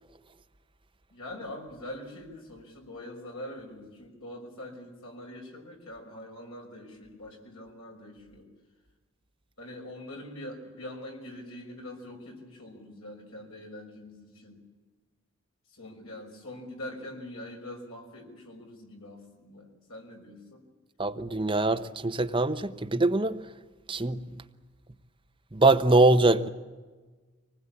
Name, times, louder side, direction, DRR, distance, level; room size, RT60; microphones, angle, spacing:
voice 1, 1.1-8.5 9.6-14.6 15.7-20.6, left 1 dB, 80° left, 5.8 m, -43 dB
voice 2, 21.0-23.4 23.9-24.2 25.5-26.5, right 2 dB, 25° right, 0.9 m, -23 dB
24.5 x 20.0 x 8.6 m
head